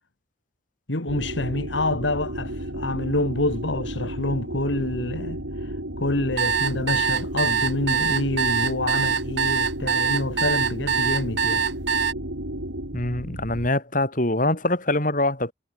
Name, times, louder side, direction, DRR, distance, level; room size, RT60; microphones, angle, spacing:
voice 1, 0.9-11.6, left 2 dB, 70° left, 2.5 m, -27 dB
sound 1, 1.1-13.7, right 1 dB, 80° right, 6.7 m, -33 dB
sound 2, 6.4-12.1, right 6 dB, 65° right, 1.5 m, -23 dB
voice 2, 12.9-15.5, left 1 dB, 40° left, 4.6 m, -24 dB
head